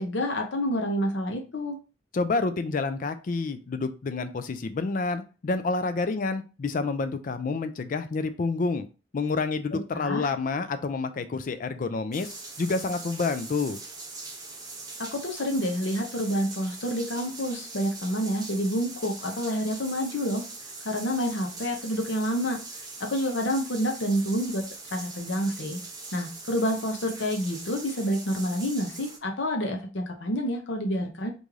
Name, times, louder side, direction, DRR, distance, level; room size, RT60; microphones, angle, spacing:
voice 1, 0.0-1.8 9.7-10.3 15.0-20.4 20.8-22.6 23.0-24.6 24.9-25.8 26.1-31.3, equal, 65° left, 3 dB, 0.8 m, -28 dB
voice 2, 2.1-8.9 9.1-13.8, left 3 dB, 45° left, 11 dB, 0.4 m, -28 dB
sound 1, 12.1-29.2, right 3 dB, 20° right, 0.7 m, -42 dB
3.1 x 2.6 x 3.5 m, 0.32 s
head